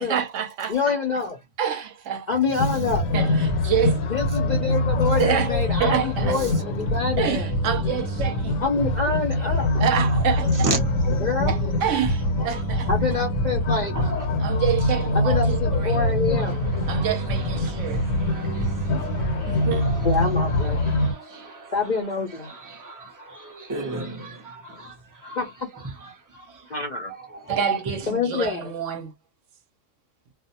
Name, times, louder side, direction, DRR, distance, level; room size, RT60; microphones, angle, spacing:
voice 1, 0.0-1.0 1.6-2.4 3.1-4.0 5.2-5.5 5.8-6.4 7.2-8.6 9.8-10.8 11.5-12.9 14.4-16.0 16.9-18.0 19.5-19.9 27.5-29.1, right 8 dB, 70° right, 0.9 m, -27 dB
voice 2, 0.7-1.4 2.3-3.0 4.1-7.5 8.6-9.7 11.2-11.5 12.9-14.1 15.1-16.6 18.9-19.0 19.4-19.5 20.0-20.8 21.7-22.5 25.4-25.5 26.7-27.1 28.1-28.7, left 4 dB, 50° left, 0.5 m, -26 dB
sound 1, 2.6-21.1, left 1 dB, 80° left, 1.0 m, -24 dB
voice 3, 17.6-20.2 20.7-21.7 22.4-24.9 25.2-25.4 26.3-26.4 27.5-27.6, right 2 dB, 25° right, 0.5 m, -34 dB
2.4 x 2.0 x 2.7 m
omnidirectional pair, 1.4 m